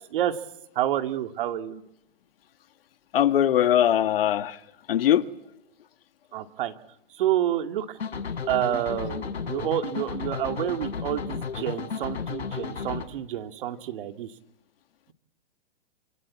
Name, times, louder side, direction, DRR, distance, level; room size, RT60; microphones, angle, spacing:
voice 1, 0.8-1.8 6.3-6.7 7.2-8.0 8.5-14.3, right 11 dB, 55° right, 2.3 m, -28 dB
voice 2, 3.1-4.5 4.9-5.2, left 11 dB, 60° left, 1.7 m, -21 dB
sound 1, 8.0-13.0, left 5 dB, 85° left, 4.7 m, -33 dB
27.5 x 25.5 x 8.5 m
hypercardioid pair, 140°, 32 cm